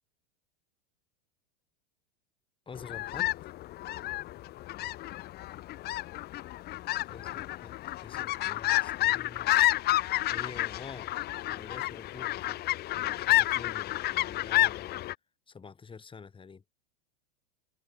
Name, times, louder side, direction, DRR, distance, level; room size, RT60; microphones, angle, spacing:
voice 1, 2.7-3.3 7.1-9.5 10.3-11.1 11.5-12.6 12.9-15.0 15.5-16.6, left 5 dB, 15° left, 7.2 m, -47 dB
sound 1, 2.8-15.1, left 15 dB, 30° left, 0.8 m, -30 dB
supercardioid pair, 135°, 32 cm